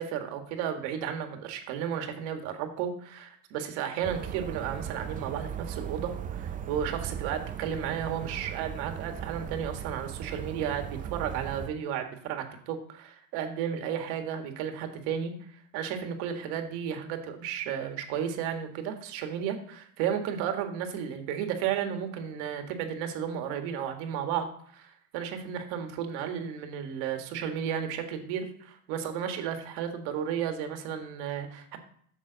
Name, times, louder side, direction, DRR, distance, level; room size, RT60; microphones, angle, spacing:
voice 1, 0.0-15.3 15.7-31.8, right 8 dB, 65° right, 6 dB, 1.9 m, -33 dB
sound 1, 4.0-11.7, right 9 dB, 20° right, 0.5 m, -38 dB
11.5 x 7.2 x 4.0 m, 0.63 s
cardioid pair, 145°, 41 cm